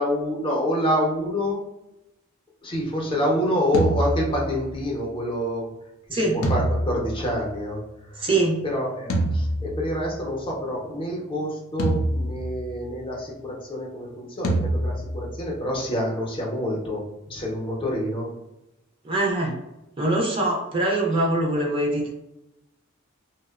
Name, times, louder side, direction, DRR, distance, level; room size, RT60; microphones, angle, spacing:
voice 1, 0.0-1.6 2.6-5.7 6.1-6.2 6.5-7.8 8.2-8.3 8.6-17.0 17.3-18.3, equal, 25° left, -3 dB, 0.6 m, -27 dB
sound 1, 3.7-4.9 6.4-8.0 9.1-10.3 11.8-13.0 14.4-15.6, right 1 dB, 90° left, 0.5 m, -26 dB
voice 2, 6.1-6.4 8.2-8.6 19.0-19.6 20.0-22.1, right 2 dB, 25° right, -1 dB, 0.4 m, -23 dB
2.7 x 2.0 x 2.3 m, 0.92 s
head